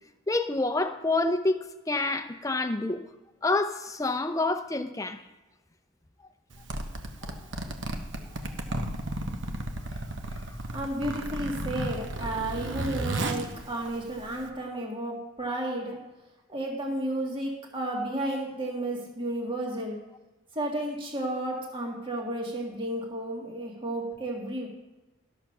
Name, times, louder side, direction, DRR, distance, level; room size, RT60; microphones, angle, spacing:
voice 1, 0.3-3.0 3.4-5.2 7.2-7.4, left 2 dB, 15° left, 8 dB, 0.6 m, -28 dB
Zipper (clothing), 6.5-14.5, right 1 dB, 60° right, 1.1 m, -34 dB
voice 2, 10.7-16.0 16.5-20.0 20.5-24.7, right 1 dB, 25° right, -1 dB, 1.9 m, -32 dB
13.0 x 6.8 x 6.1 m, 1.1 s
head